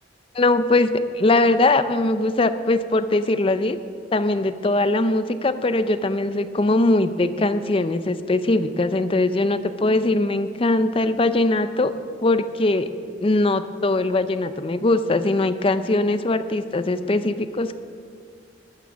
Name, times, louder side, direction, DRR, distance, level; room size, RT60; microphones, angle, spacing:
voice 1, 0.3-3.8 4.1-11.9 12.2-12.9 13.2-17.8, left 2 dB, 30° left, 11 dB, 0.5 m, -21 dB
14.0 x 9.4 x 6.2 m, 2.2 s
head